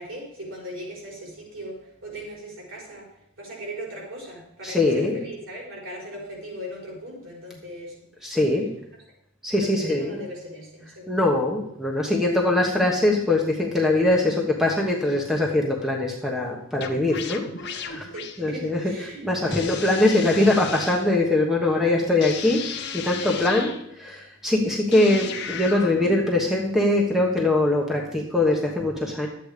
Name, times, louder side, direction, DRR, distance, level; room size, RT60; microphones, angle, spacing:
voice 1, 0.0-8.3 9.6-11.3 18.1-20.2, equal, 65° right, -2 dB, 5.1 m, -39 dB
voice 2, 4.6-5.2 8.2-8.7 9.4-10.2 11.1-18.0 18.4-29.3, left 2 dB, ahead, -1 dB, 1.3 m, -22 dB
sound 1, 16.8-18.4 19.5-21.1 22.2-23.8 24.9-26.3, left 7 dB, 50° left, 0.9 m, -35 dB
12.5 x 8.4 x 5.1 m, 0.75 s
head